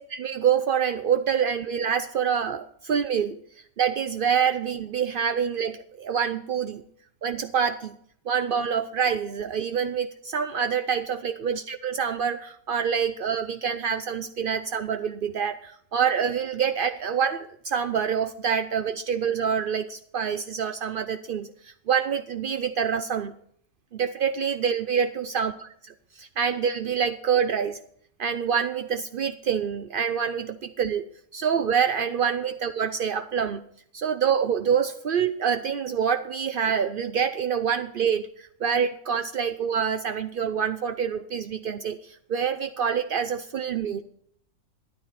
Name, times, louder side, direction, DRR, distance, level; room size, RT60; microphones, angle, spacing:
voice 1, 0.0-3.4 3.8-6.8 7.2-7.9 8.3-23.3 23.9-25.5 25.8-27.8 28.2-31.1 31.3-33.6 33.9-44.0, right 7 dB, 75° right, 10 dB, 0.5 m, -26 dB
12.5 x 11.0 x 4.2 m, 0.66 s
omnidirectional pair, 1.6 m